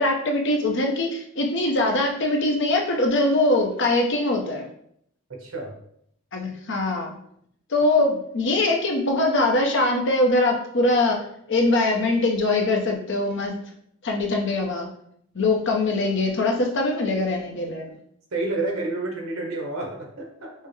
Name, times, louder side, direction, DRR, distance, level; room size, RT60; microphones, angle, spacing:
voice 1, 0.0-4.7 6.3-7.1 7.7-11.2 11.5-13.6 14.0-14.9 15.3-18.0, left 2 dB, 60° left, 2 dB, 0.7 m, -22 dB
voice 2, 5.3-5.7 18.3-20.5, right 2 dB, 80° right, 1 dB, 1.0 m, -29 dB
5.5 x 2.1 x 3.2 m, 0.70 s
head